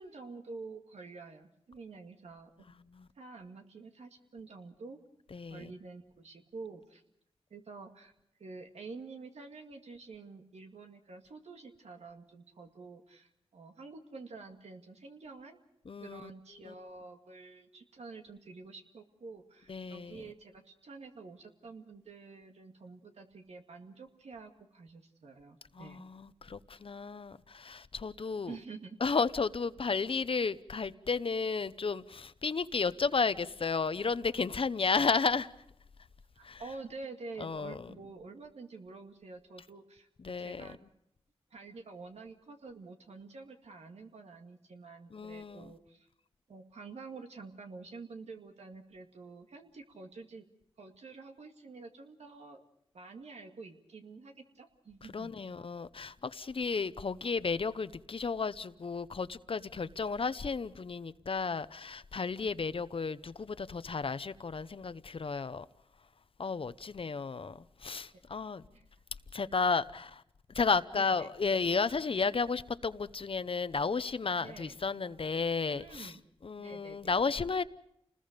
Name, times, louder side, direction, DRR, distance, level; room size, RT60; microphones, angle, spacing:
voice 1, 0.0-2.7 3.2-5.0 5.5-7.0 7.5-8.1 8.4-15.6 16.0-26.0 28.5-29.0 36.3-40.8 41.5-46.1 46.5-50.5 50.8-52.6 52.9-55.3 68.1-68.2 68.7-68.9 70.9-71.3 74.4-74.8 75.7-76.2 76.6-77.2, right 4 dB, 90° right, 2.1 m, -48 dB
voice 2, 5.3-5.7 15.9-16.3 16.6-16.7 19.7-20.2 25.7-28.6 29.0-35.5 36.4-36.6 37.4-37.9 40.2-40.7 45.1-45.7 55.1-65.7 66.4-68.6 69.3-70.2 70.5-76.1 76.4-77.6, left 4 dB, 55° left, 0.8 m, -33 dB
29.0 x 20.0 x 5.2 m
cardioid pair, 60°, 11 cm